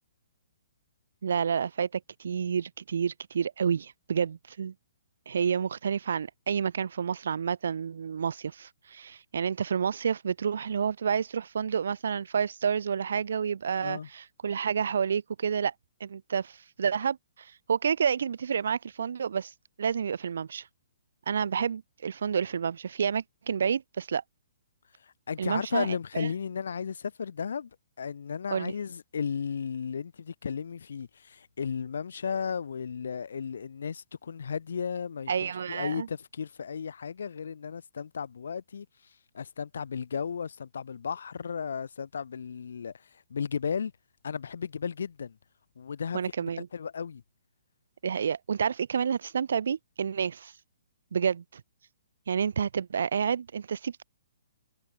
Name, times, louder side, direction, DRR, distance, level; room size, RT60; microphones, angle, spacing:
voice 1, 1.2-4.7 5.3-15.7 16.0-19.5 19.8-20.7 21.3-24.2 25.4-25.9 26.1-26.3 28.5-28.7 35.3-36.1 46.1-46.7 48.0-50.5 51.1-51.6 52.3-54.0, right 7 dB, 55° right, 0.7 m, -29 dB
voice 2, 13.8-14.1 25.0-27.7 28.0-35.3 35.7-38.9 39.3-43.9 44.2-45.4 45.8-46.2 46.7-47.2, left 6 dB, 60° left, 0.6 m, -34 dB
hypercardioid pair, 180°, 0 cm